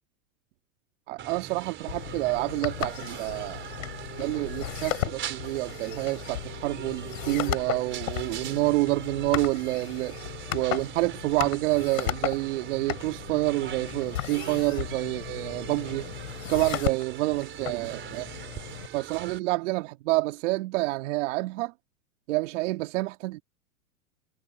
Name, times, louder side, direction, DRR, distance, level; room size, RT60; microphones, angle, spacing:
voice 1, 1.1-3.6 4.2-10.2 10.5-16.1 16.5-18.3 18.9-21.7 22.3-23.4, right 21 dB, 55° right, 2.2 m, -28 dB
sound 1, 1.2-19.4, right 10 dB, 25° right, 4.2 m, -41 dB
sound 2, 1.9-18.9, left 14 dB, 65° left, 7.5 m, -36 dB
hypercardioid pair, 110°, 43 cm